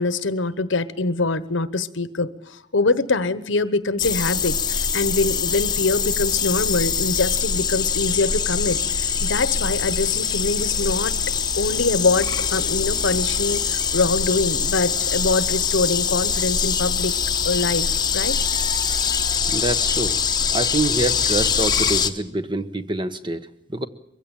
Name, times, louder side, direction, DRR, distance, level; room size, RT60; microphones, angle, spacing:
voice 1, 0.0-11.2 11.6-17.2 17.4-18.4, left 3 dB, 85° left, 14 dB, 1.1 m, -24 dB
sound 1, 4.0-22.1, left 6 dB, 20° left, 1.0 m, -23 dB
voice 2, 19.5-20.2 20.5-23.9, right 2 dB, 25° right, 11 dB, 1.0 m, -26 dB
23.0 x 15.5 x 8.9 m, 0.75 s
head